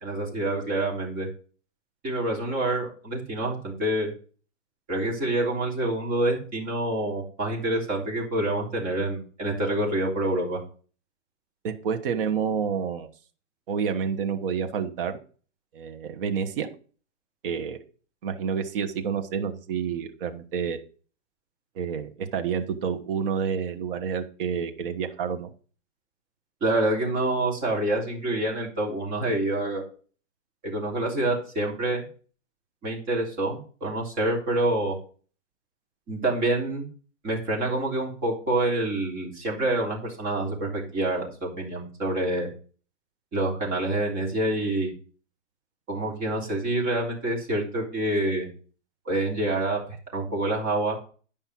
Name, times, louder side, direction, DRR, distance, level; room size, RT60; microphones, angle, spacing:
voice 1, 0.0-1.3 2.0-4.1 4.9-10.6 26.6-29.8 30.6-32.1 32.8-34.9 36.1-36.9 37.2-42.5 43.3-44.9 45.9-48.5 49.0-49.8 50.1-51.0, right 1 dB, 20° right, -2 dB, 3.2 m, -27 dB
voice 2, 11.6-13.1 13.7-15.2 15.7-16.7 17.4-17.8 18.2-20.8 21.7-25.5, right 7 dB, 45° right, 6 dB, 1.4 m, -29 dB
10.5 x 5.4 x 6.1 m, 0.40 s
hypercardioid pair, 160°, 37 cm